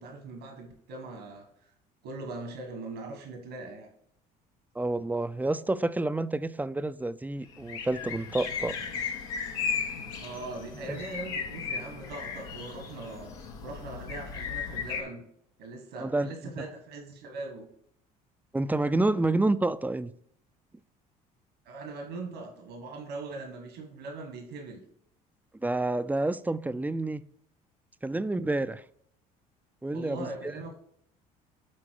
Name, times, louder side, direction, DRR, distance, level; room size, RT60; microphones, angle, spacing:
voice 1, 0.0-1.7 2.0-3.9 10.2-13.3 13.6-15.2 15.6-17.7 21.6-24.8 29.9-30.7, right 2 dB, 75° right, 1.8 m, -41 dB
voice 2, 4.8-8.8 10.9-11.0 16.0-16.7 18.5-20.1 25.6-27.2 28.0-28.8 29.8-30.3, right 2 dB, 10° right, 0.5 m, -29 dB
sound 1, 7.5-15.0, left 6 dB, 85° left, 1.4 m, -36 dB
8.6 x 4.3 x 4.7 m
hypercardioid pair, 65°, 19 cm